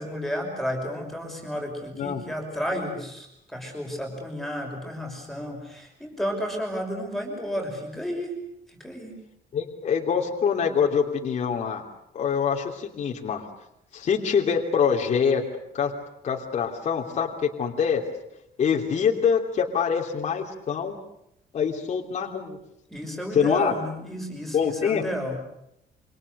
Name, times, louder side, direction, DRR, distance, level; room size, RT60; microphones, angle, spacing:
voice 1, 0.0-8.3 8.7-9.2 22.9-25.4, equal, ahead, 1 dB, 5.8 m, -32 dB
voice 2, 9.5-11.8 12.1-13.4 13.9-15.4 15.7-15.9 16.2-18.0 18.6-21.0 21.5-22.6 23.3-23.7 24.5-25.0, left 7 dB, 40° left, 0 dB, 3.0 m, -24 dB
28.5 x 26.0 x 6.8 m, 0.80 s
cardioid pair, 180°, 18 cm